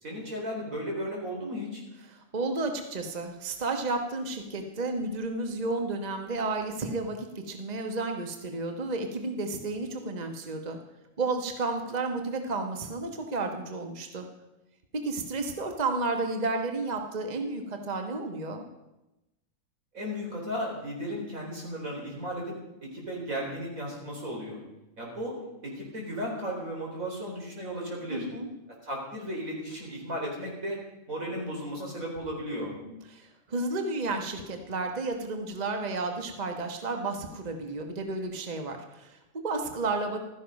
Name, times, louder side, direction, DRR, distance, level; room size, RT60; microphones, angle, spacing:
voice 1, 0.0-1.8 19.9-24.6 25.0-25.4 25.6-28.3 28.8-30.8 31.1-32.7, equal, 85° right, -1 dB, 4.6 m, -35 dB
voice 2, 2.1-10.8 11.2-14.3 14.9-18.6 28.1-28.5 32.8-40.2, right 3 dB, 35° right, 5 dB, 1.2 m, -32 dB
15.5 x 13.5 x 5.3 m, 0.96 s
omnidirectional pair, 1.4 m